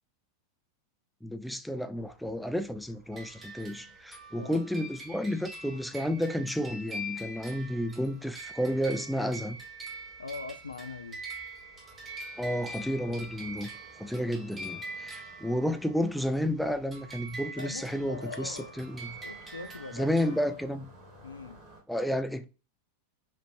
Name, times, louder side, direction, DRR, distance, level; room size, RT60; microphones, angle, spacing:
voice 1, 1.2-9.6 12.4-13.7 14.0-19.1 19.9-20.9 21.9-22.5, equal, ahead, 0.4 m, -31 dB
sound 1, 1.9-21.8, right 1 dB, 40° right, 1.7 m, -57 dB
sound 2, 3.1-16.4 16.9-20.4, right 1 dB, 15° right, 1.0 m, -44 dB
voice 2, 10.2-11.2 17.6-18.8 19.2-20.5 21.2-21.6, left 4 dB, 75° left, 0.4 m, -42 dB
4.4 x 2.5 x 2.5 m
figure-of-eight pair, 90°, 0 cm